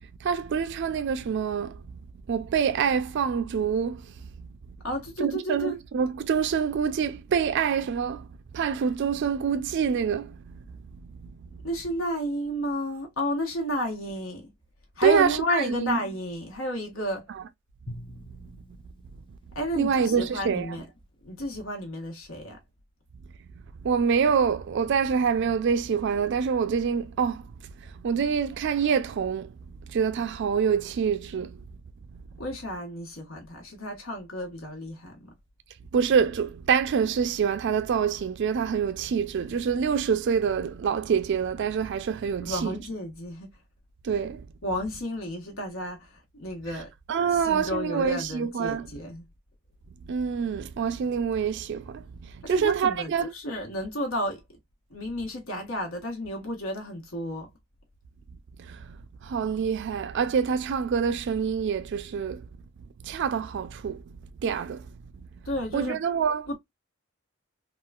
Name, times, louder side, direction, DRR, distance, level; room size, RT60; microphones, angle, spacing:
voice 1, 0.2-1.8 2.3-4.1 4.4-4.5 5.2-8.3 8.5-10.6 11.2-11.3 15.0-16.0 19.7-20.7 23.8-27.5 28.0-29.5 29.9-31.6 32.1-32.2 35.9-42.8 44.0-44.4 47.1-48.9 50.1-53.3 58.6-58.9 59.2-62.4 63.0-64.0 64.4-64.9 65.7-66.5, right 6 dB, 60° right, 0.4 m, -26 dB
voice 2, 4.8-5.8 11.6-14.5 15.0-17.3 19.5-20.9 21.2-22.6 32.4-35.3 42.4-43.5 44.6-46.9 47.3-49.3 52.4-54.4 54.9-57.5 65.4-66.0 66.5-66.6, equal, 85° left, 1.3 m, -32 dB
Drum, 17.9-20.3, left 1 dB, 25° left, 0.4 m, -46 dB
3.6 x 2.3 x 2.3 m
head